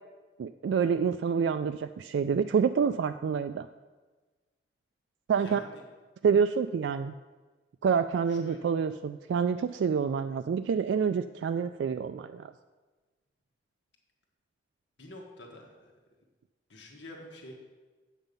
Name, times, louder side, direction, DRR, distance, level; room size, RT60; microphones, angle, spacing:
voice 1, 0.4-3.7 5.3-5.6 6.2-7.1 7.8-12.5, right 6 dB, 85° right, 9 dB, 0.3 m, -27 dB
voice 2, 5.4-5.8 8.3-8.7 15.0-15.9 16.7-17.5, left 1 dB, 80° left, 1 dB, 1.4 m, -47 dB
9.0 x 7.3 x 5.3 m, 1.3 s
head